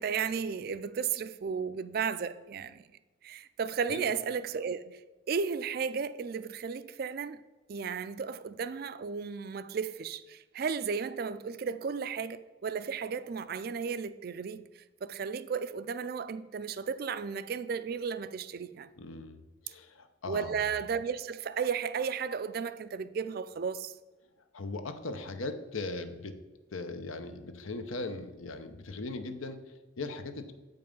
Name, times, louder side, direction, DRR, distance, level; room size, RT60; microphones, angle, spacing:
voice 1, 0.0-2.8 3.2-5.0 5.3-7.4 7.7-14.7 15.0-18.9 20.3-23.9, right 6 dB, 50° right, 0.3 m, -34 dB
voice 2, 19.0-20.8 24.5-26.4 26.7-30.5, left 3 dB, 85° left, 0.8 m, -39 dB
7.9 x 5.4 x 5.3 m
head